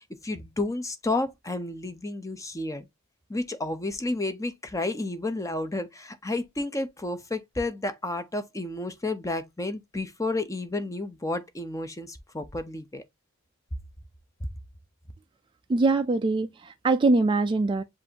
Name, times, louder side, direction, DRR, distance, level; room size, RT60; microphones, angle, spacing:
voice 1, 0.2-2.9 3.3-13.0, left 2 dB, 15° left, 0.6 m, -31 dB
voice 2, 15.7-17.8, right 3 dB, 25° right, 0.3 m, -23 dB
7.5 x 2.6 x 2.8 m
head